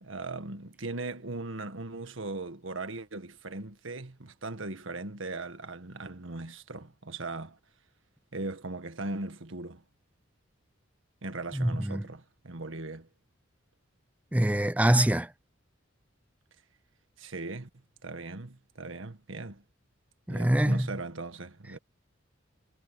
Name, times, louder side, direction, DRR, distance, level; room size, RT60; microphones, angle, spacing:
voice 1, 0.0-7.6 8.3-9.8 11.2-13.1 17.2-17.7 18.0-19.6 20.3-21.8, right 2 dB, 75° right, 1.7 m, -39 dB
voice 2, 11.5-12.0 14.3-15.3 20.3-20.9, right 1 dB, 5° right, 0.5 m, -24 dB
head